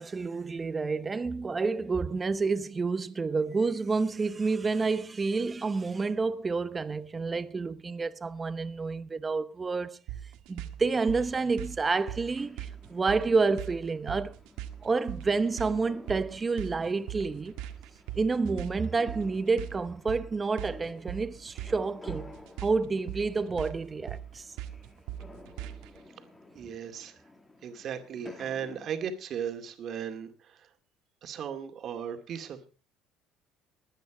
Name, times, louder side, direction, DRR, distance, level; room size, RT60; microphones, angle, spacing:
voice 1, 0.0-10.0 10.5-14.4 14.8-17.6 18.1-22.3 22.6-24.5, right 4 dB, 20° right, 0.8 m, -29 dB
sound 1, 10.1-26.0, right 12 dB, 85° right, 1.7 m, -40 dB
sound 2, 10.8-28.9, left 2 dB, 15° left, 2.3 m, -53 dB
voice 2, 26.5-27.2 27.6-30.7 31.2-32.7, right 8 dB, 45° right, 2.2 m, -36 dB
21.0 x 9.2 x 4.9 m
cardioid pair, 130°, 0 cm